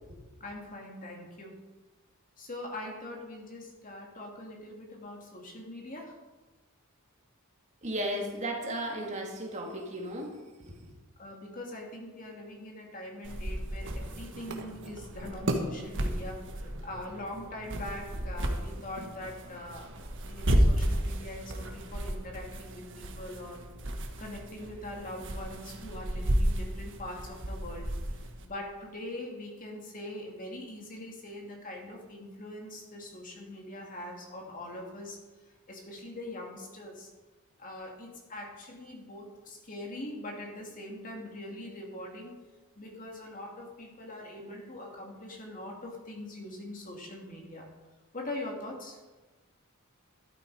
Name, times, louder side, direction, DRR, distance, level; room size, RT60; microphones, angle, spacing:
voice 1, 0.4-1.6 2.4-6.1 11.2-19.9 20.3-23.6 24.2-27.9 28.4-35.2 35.7-37.1 37.6-42.3 42.8-47.7 48.1-49.0, left 1 dB, 40° left, 0 dB, 2.7 m, -42 dB
voice 2, 7.8-10.8, right 1 dB, 35° right, 0 dB, 2.3 m, -35 dB
sound 1, 13.2-28.5, equal, 60° right, 1.5 m, -33 dB
12.5 x 12.5 x 5.0 m, 1.2 s
head